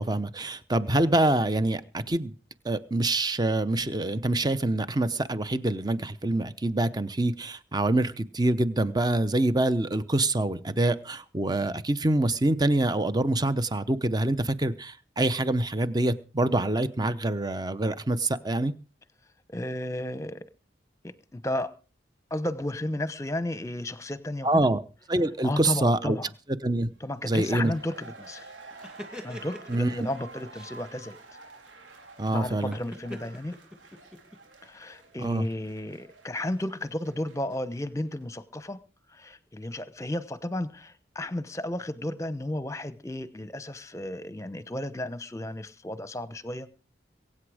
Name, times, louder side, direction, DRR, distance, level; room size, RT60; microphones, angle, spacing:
voice 1, 0.0-2.3 2.6-18.7 24.4-24.8 25.1-26.2 26.6-26.9 27.3-27.7 29.7-30.1 32.2-32.8 35.2-35.5, right 1 dB, 20° right, 0.8 m, -25 dB
voice 2, 19.5-20.4 21.0-21.7 22.3-24.7 25.4-26.3 27.0-28.5 29.2-31.2 32.3-33.6 34.6-38.8 39.1-46.7, left 1 dB, 15° left, 0.9 m, -33 dB
sound 1, 27.1-37.9 38.2-38.3, right 3 dB, 80° right, 4.2 m, -50 dB
sound 2, 28.3-29.9 30.5-30.7 32.7-34.4, left 1 dB, 5° right, 2.2 m, -43 dB
22.5 x 8.7 x 5.0 m
head